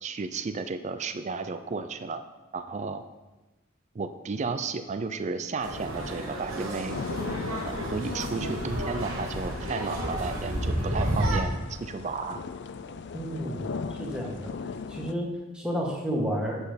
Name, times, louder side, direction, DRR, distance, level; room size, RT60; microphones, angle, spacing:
voice 1, 0.0-2.2 2.5-3.0 3.9-7.0 7.6-12.4, right 4 dB, 35° right, 9 dB, 0.4 m, -33 dB
sound 1, 5.6-11.4, right 1 dB, 80° right, 1.4 m, -31 dB
sound 2, 6.9-15.1, left 4 dB, 55° left, 0.4 m, -38 dB
voice 2, 13.1-13.7 14.0-14.5 14.9-16.7, equal, 5° right, -3 dB, 1.5 m, -31 dB
7.7 x 6.2 x 5.1 m, 1.1 s
head